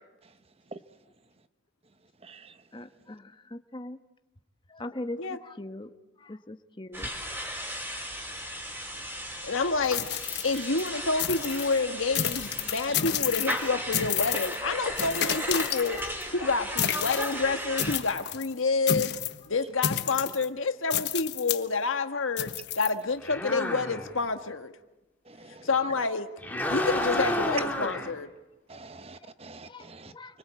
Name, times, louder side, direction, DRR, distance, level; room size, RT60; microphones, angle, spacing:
voice 1, 2.2-2.5 12.8-13.0 22.9-23.0 25.3-25.7 26.7-26.8 28.7-30.1, right 3 dB, 30° right, 1.0 m, -45 dB
voice 2, 2.7-4.0 4.7-5.9 6.2-7.1 29.7-30.3, left 1 dB, 25° left, 1.2 m, -40 dB
sound 1, 6.9-18.0, equal, 10° right, 4.7 m, -36 dB
voice 3, 9.4-19.1 19.5-24.7 25.6-26.3 26.7-28.3, left 4 dB, 90° left, 1.6 m, -28 dB
sound 2, 9.8-10.9 11.2-11.7 12.2-13.7 13.9-14.6 15.0-16.2 16.8-17.3 17.8-18.5 18.9-19.4 19.8-20.5 20.9-21.6 22.4-22.9, left 10 dB, 60° left, 1.2 m, -30 dB
sound 3, 23.2-24.2 26.4-28.1, left 1 dB, 10° left, 3.6 m, -30 dB
29.5 x 24.5 x 8.3 m
head